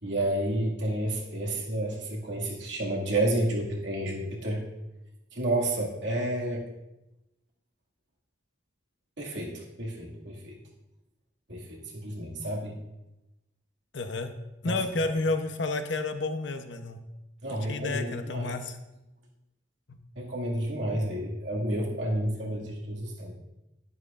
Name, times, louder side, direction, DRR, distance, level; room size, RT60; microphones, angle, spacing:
voice 1, 0.0-4.6 5.3-6.6 9.2-10.5 11.5-12.8 14.6-14.8 17.4-18.5 20.2-23.4, right 1 dB, 80° right, -3 dB, 2.1 m, -30 dB
voice 2, 13.9-14.3 14.6-17.0 17.7-18.8 19.9-20.0, left 3 dB, 80° left, 7 dB, 0.8 m, -30 dB
11.0 x 10.5 x 2.5 m, 0.96 s
head